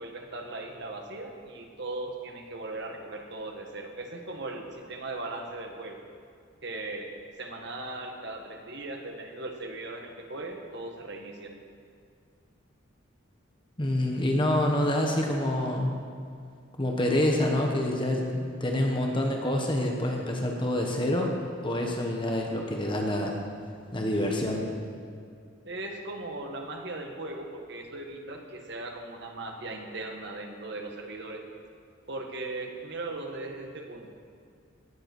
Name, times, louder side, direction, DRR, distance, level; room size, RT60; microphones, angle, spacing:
voice 1, 0.0-6.0 6.6-7.1 7.4-11.5 25.6-31.4 32.1-34.1, right 2 dB, 60° right, 2 dB, 1.6 m, -38 dB
voice 2, 13.8-16.0 16.8-21.3 21.6-23.4 23.9-24.6, left 1 dB, 25° left, 1 dB, 1.3 m, -27 dB
17.5 x 8.1 x 6.1 m, 2.3 s
head